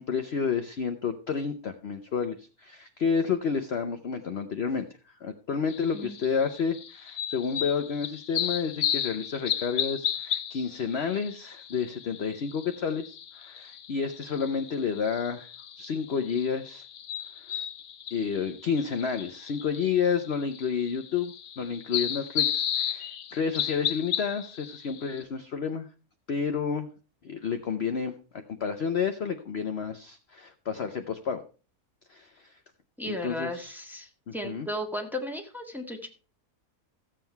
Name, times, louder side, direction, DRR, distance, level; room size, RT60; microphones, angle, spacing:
voice 1, 0.0-4.9 5.2-15.5 15.8-16.8 17.4-17.6 18.1-25.9 26.3-26.9 27.2-31.4 32.1-32.6 33.0-33.7 34.3-34.7, left 6 dB, 50° left, 7 dB, 0.9 m, -30 dB
sound 1, 5.7-25.2, left 10 dB, 70° left, 1.3 m, -34 dB
voice 2, 33.0-36.1, left 1 dB, ahead, 3 dB, 1.6 m, -35 dB
15.0 x 7.6 x 4.5 m, 0.36 s
omnidirectional pair, 1.6 m